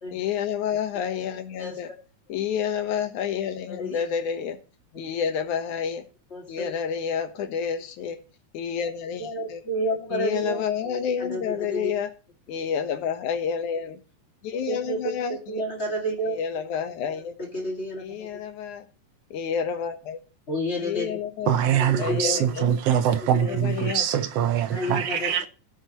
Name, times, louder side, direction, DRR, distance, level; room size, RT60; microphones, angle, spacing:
voice 1, 0.1-1.9 2.3-4.6 5.0-6.0 6.5-8.2 8.5-9.6 10.1-12.1 12.5-14.0 14.4-15.4 16.3-17.3 18.0-18.8 19.3-20.2 20.8-21.6 22.0-22.6 23.4-24.1, left 7 dB, 80° left, 2.6 m, -29 dB
voice 2, 1.6-2.0 3.6-4.1 6.3-6.7 8.0-8.1 9.2-11.9 14.5-16.4 17.0-18.3 20.5-21.2 21.7-22.4 23.1-23.6 24.7-25.3, equal, 25° left, 2.0 m, -31 dB
voice 3, 21.5-25.5, right 9 dB, 70° right, 1.6 m, -23 dB
16.0 x 7.4 x 3.0 m
omnidirectional pair, 3.4 m